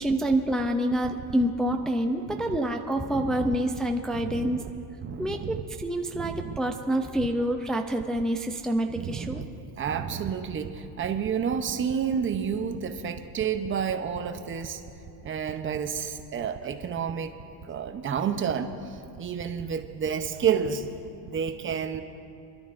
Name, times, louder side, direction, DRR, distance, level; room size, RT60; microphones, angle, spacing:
voice 1, 0.0-4.6 5.2-9.4, right 1 dB, ahead, 3 dB, 0.4 m, -27 dB
voice 2, 2.2-2.6 3.0-3.6 4.2-4.6 5.0-5.6 6.1-6.6 8.9-9.5 9.8-14.8 15.2-17.3 17.6-20.9 21.2-22.0, right 7 dB, 30° right, 7 dB, 0.8 m, -30 dB
29.0 x 12.0 x 2.6 m, 2.7 s
cardioid pair, 135°, 42 cm